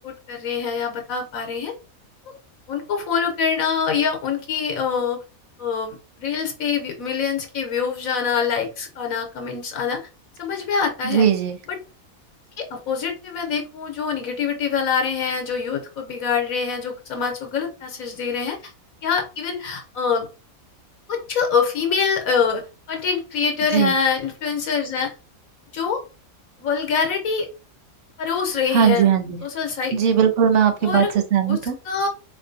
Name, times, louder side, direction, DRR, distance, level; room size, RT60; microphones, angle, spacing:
voice 1, 0.0-1.7 2.3-2.4 2.7-5.2 5.6-10.0 10.4-11.3 11.7-11.8 12.6-18.7 19.0-20.3 21.1-25.1 25.7-26.0 26.6-27.5 28.2-29.1 29.4-30.0 30.8-31.1 31.5-31.6 31.8-32.1, left 6 dB, 75° left, 3 dB, 1.2 m, -25 dB
voice 2, 11.0-11.6 23.7-23.9 28.7-29.4 29.9-31.0 31.3-31.8, right 8 dB, 60° right, 7 dB, 1.0 m, -18 dB
4.3 x 2.6 x 2.6 m, 0.32 s
omnidirectional pair, 1.5 m